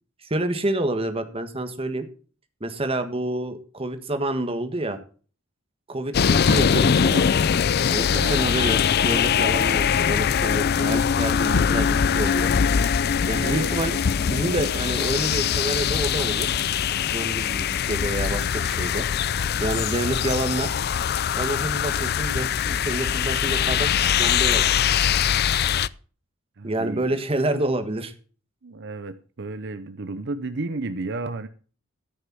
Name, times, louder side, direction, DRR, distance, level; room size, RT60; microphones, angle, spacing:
voice 1, 0.3-2.1 2.6-5.0 5.9-7.3 7.9-12.5 13.3-16.5 17.1-19.1 19.6-20.7 21.3-23.9 24.2-25.1 26.6-28.1, right 1 dB, 30° right, 1.5 m, -28 dB
sound 1, 6.1-25.9, left 7 dB, 50° left, 0.4 m, -22 dB
voice 2, 26.6-27.2 28.6-31.5, right 3 dB, 60° right, 0.7 m, -32 dB
13.5 x 6.6 x 6.2 m
head